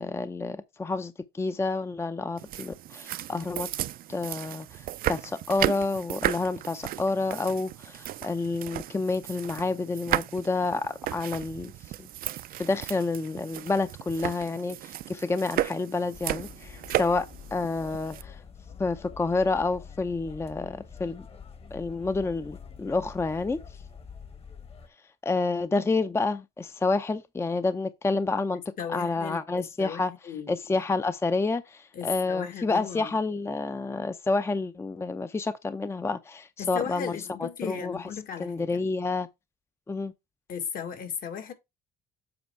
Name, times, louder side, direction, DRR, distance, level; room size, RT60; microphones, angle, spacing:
voice 1, 0.0-3.7 4.1-11.7 12.0-12.1 12.6-17.3 17.5-18.4 18.8-21.3 21.7-23.6 25.2-28.6 28.9-30.1 30.5-38.1 38.4-39.3 39.9-40.1, left 3 dB, 15° left, 0.6 m, -29 dB
sound 1, 2.4-18.2, right 13 dB, 60° right, 0.5 m, -34 dB
sound 2, 16.1-24.9, left 6 dB, 35° left, 1.4 m, -46 dB
voice 2, 28.8-30.6 31.9-33.1 36.6-38.8 40.5-41.5, left 7 dB, 55° left, 1.8 m, -36 dB
7.9 x 4.5 x 4.5 m
cardioid pair, 110°, 17 cm